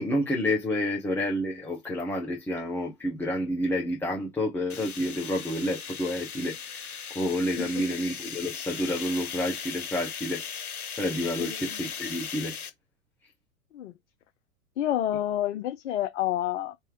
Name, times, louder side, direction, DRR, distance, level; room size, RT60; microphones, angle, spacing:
voice 1, 0.0-10.4 11.0-12.6, left 1 dB, 5° left, 0.9 m, -29 dB
sound 1, 4.7-12.7, left 7 dB, 75° left, 0.9 m, -38 dB
voice 2, 14.8-16.8, left 12 dB, 55° left, 0.6 m, -29 dB
3.4 x 2.9 x 4.7 m
figure-of-eight pair, 95°, 44 cm